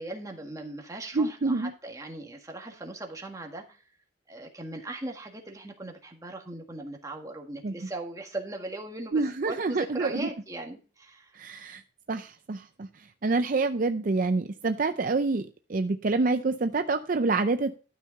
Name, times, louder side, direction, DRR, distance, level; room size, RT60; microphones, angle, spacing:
voice 1, 0.0-3.8 4.3-11.7, right 2 dB, 20° right, 2 dB, 1.6 m, -39 dB
voice 2, 1.1-1.7 7.6-7.7 9.1-10.3 11.3-11.8 12.1-12.9 13.2-17.7, right 3 dB, 45° right, 8 dB, 0.5 m, -27 dB
12.5 x 5.8 x 4.0 m, 0.37 s
head